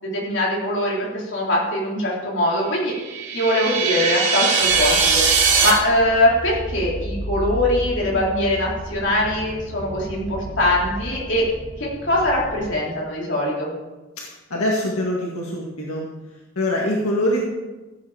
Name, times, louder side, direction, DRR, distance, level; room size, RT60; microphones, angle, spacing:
voice 1, 0.0-2.9 3.3-5.2 5.6-11.4 11.8-13.7, left 1 dB, 55° left, -4 dB, 3.9 m, -22 dB
sound 1, 2.9-5.7, right 5 dB, 50° right, 3.1 m, -20 dB
sound 2, 4.6-12.7, equal, 5° right, 4.1 m, -33 dB
voice 2, 14.2-16.1 16.6-17.4, left 1 dB, 90° left, -2 dB, 1.9 m, -24 dB
15.5 x 8.0 x 5.0 m, 1.1 s
head